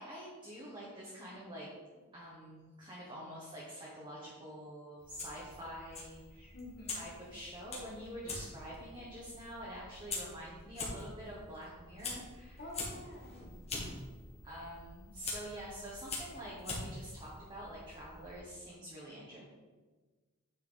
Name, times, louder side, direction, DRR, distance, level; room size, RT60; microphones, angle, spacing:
voice 1, 0.0-1.7 2.1-6.5 6.9-12.6 14.4-19.4, equal, 20° right, -6 dB, 1.4 m, -47 dB
Fire, 5.0-18.4, left 3 dB, 30° left, 1.8 m, -45 dB
voice 2, 6.5-7.1 12.6-13.5, left 2 dB, 45° left, -2 dB, 1.5 m, -48 dB
9.0 x 4.6 x 4.0 m, 1.3 s
head